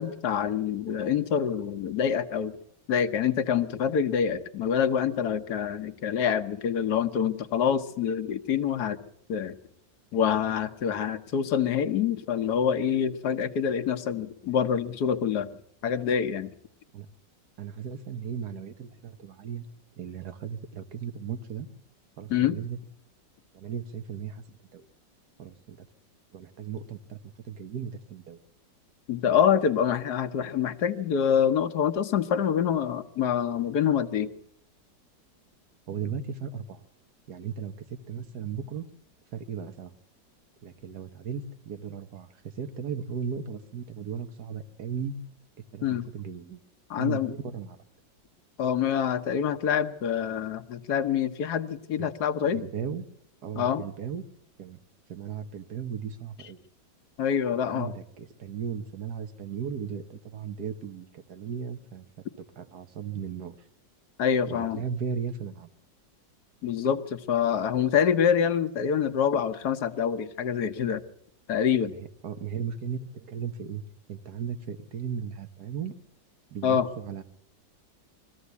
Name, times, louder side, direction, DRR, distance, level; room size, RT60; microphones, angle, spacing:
voice 1, 0.0-2.5 2.9-9.0 9.3-9.6 10.1-15.5 15.8-16.5 22.3-22.6 29.1-34.3 45.8-46.1 46.9-47.3 48.6-52.6 53.5-53.8 57.2-57.9 64.2-64.8 66.6-71.0 71.5-71.9 76.6-76.9, left 8 dB, 65° left, 9 dB, 1.5 m, -26 dB
voice 2, 17.6-19.7 20.0-21.7 22.2-22.8 23.5-24.9 25.4-25.9 26.3-27.2 27.5-28.4 35.9-36.8 37.3-38.8 39.3-39.9 40.6-42.3 42.6-45.1 45.7-46.6 47.0-47.8 52.0-52.1 52.5-53.1 53.4-54.2 54.6-54.8 55.1-56.6 57.7-62.1 62.6-63.6 64.5-65.7 71.9-73.8 74.1-75.9 76.5-77.2, right 7 dB, 60° right, 10 dB, 1.8 m, -36 dB
22.5 x 15.0 x 8.2 m, 0.72 s
omnidirectional pair, 2.0 m